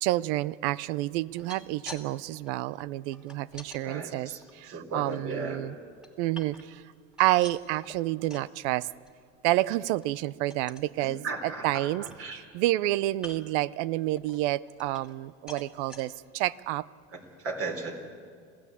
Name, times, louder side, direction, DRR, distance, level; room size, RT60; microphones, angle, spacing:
voice 1, 0.0-5.7 6.2-6.8 7.2-8.9 9.4-11.2 11.6-12.0 12.3-16.8, right 16 dB, 70° right, 20 dB, 0.7 m, -29 dB
sound 1, 1.2-2.1 2.3-3.8 4.4-5.4 5.8-6.8 7.1-8.5 8.9-9.1 9.4-9.5 9.9-10.1 10.5-10.9 11.4-11.5 11.7-12.5 13.1-13.6 14.2-15.2 15.5-16.0 16.6-16.7 17.0-17.1, left 1 dB, ahead, 2.6 m, -47 dB
voice 2, 3.8-4.4 4.7-5.6 11.0-12.4 17.1-18.0, right 3 dB, 40° right, 4 dB, 3.9 m, -36 dB
27.0 x 15.5 x 8.4 m, 2.1 s
supercardioid pair, 105°, 35 cm